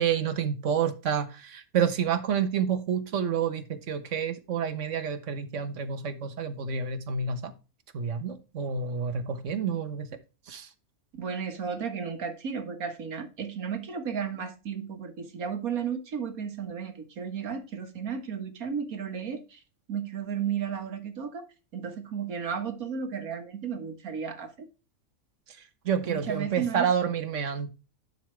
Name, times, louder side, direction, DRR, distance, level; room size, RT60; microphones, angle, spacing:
voice 1, 0.0-7.5 7.9-10.1 10.5-10.7 25.8-27.7, right 7 dB, 60° right, 1.4 m, -29 dB
voice 2, 11.2-19.6 19.9-21.4 21.7-24.7 26.1-26.9, right 7 dB, 75° right, 1.9 m, -34 dB
11.0 x 5.3 x 3.2 m
omnidirectional pair, 1.5 m